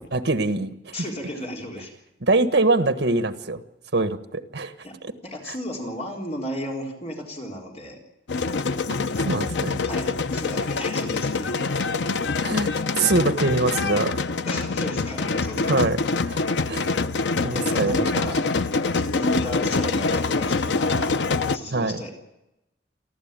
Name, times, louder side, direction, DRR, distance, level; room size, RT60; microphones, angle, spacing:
voice 1, 0.1-0.9 2.2-3.6 3.9-4.7 5.5-5.6 9.3-9.8 12.4-14.2 15.7-16.0 16.3-16.4 16.7-17.0 17.4-18.3 21.7-22.0, right 3 dB, 70° right, 9 dB, 1.4 m, -23 dB
voice 2, 0.9-1.9 4.8-8.0 9.8-11.7 14.5-15.8 17.6-21.1 21.4-22.1, equal, 35° left, 0 dB, 4.0 m, -34 dB
sound 1, 8.3-21.6, left 4 dB, 80° left, 0.7 m, -25 dB
29.0 x 12.0 x 9.0 m, 0.91 s
head